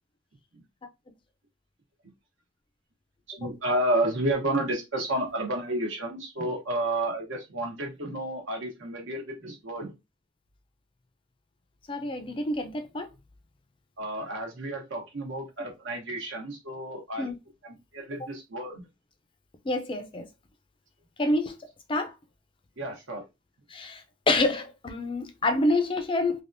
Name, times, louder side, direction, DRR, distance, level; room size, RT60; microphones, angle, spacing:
voice 1, 3.4-9.9 14.0-17.3 17.6-18.9 22.8-23.2, right 1 dB, 70° right, 1.0 m, -31 dB
voice 2, 11.9-13.1 17.2-17.4 19.7-20.3 21.2-21.5 21.9-22.1 23.7-24.0 24.3-26.4, left 2 dB, 25° left, 0.4 m, -27 dB
3.3 x 2.4 x 2.5 m
head